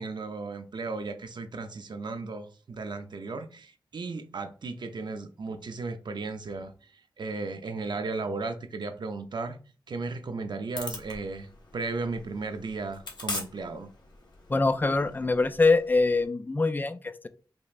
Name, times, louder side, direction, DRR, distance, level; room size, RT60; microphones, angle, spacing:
voice 1, 0.0-6.9 7.2-9.6 9.9-13.9, right 3 dB, 65° right, 0.6 m, -35 dB
sound 1, 10.7-16.3, left 3 dB, 65° left, 1.3 m, -42 dB
voice 2, 14.5-17.3, left 3 dB, 25° left, 0.4 m, -24 dB
5.2 x 3.1 x 2.5 m
wide cardioid pair, 85°, 8 cm